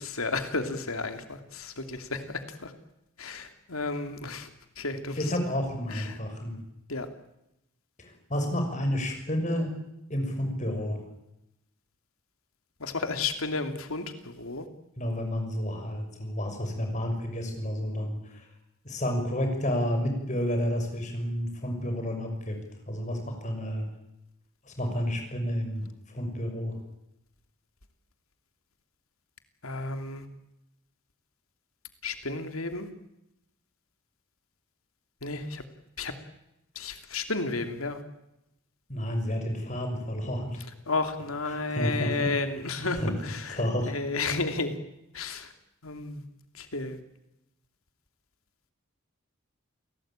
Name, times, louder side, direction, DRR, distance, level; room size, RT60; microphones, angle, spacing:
voice 1, 0.0-2.7 3.2-4.5 4.8-5.2 5.9-6.2 6.9-7.1 12.8-14.7 29.6-30.2 32.0-32.9 35.2-35.6 36.0-36.1 36.7-38.0 40.9-43.6 43.9-44.8 45.1-45.5 45.8-46.2 46.6-47.0, left 3 dB, 90° left, 8 dB, 2.8 m, -32 dB
voice 2, 5.1-6.6 8.0-9.7 10.1-11.0 15.0-18.4 18.8-22.6 22.9-23.8 24.6-25.8 26.1-26.8 38.9-40.6 41.5-42.3 42.8-43.1 43.5-43.9, equal, 35° left, 4 dB, 6.2 m, -30 dB
29.0 x 18.0 x 9.0 m, 0.88 s
head